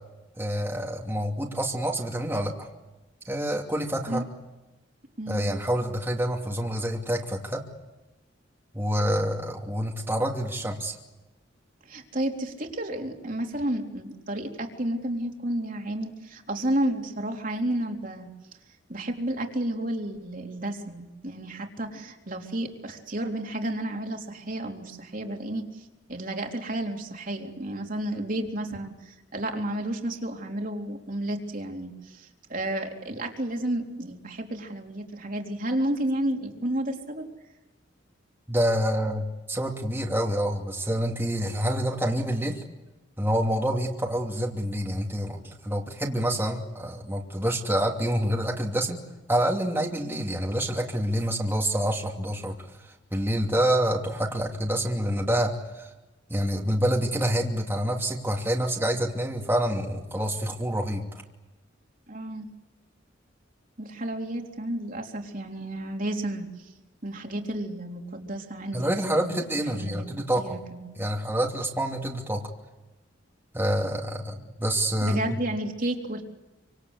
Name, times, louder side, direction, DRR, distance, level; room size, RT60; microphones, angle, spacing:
voice 1, 0.4-2.7 3.3-4.2 5.3-7.6 8.7-10.9 38.5-42.6 43.2-49.0 49.3-52.5 53.1-55.9 56.3-61.0 68.7-70.6 71.0-72.5 73.5-74.3 74.6-75.2, equal, 10° right, -1 dB, 2.8 m, -27 dB
voice 2, 5.2-5.5 11.9-18.3 18.9-37.3 62.1-62.5 63.8-66.7 67.0-69.4 69.7-70.1 70.4-71.0 75.0-76.2, right 1 dB, 45° right, 2 dB, 3.6 m, -31 dB
28.0 x 26.0 x 8.2 m, 1.0 s
head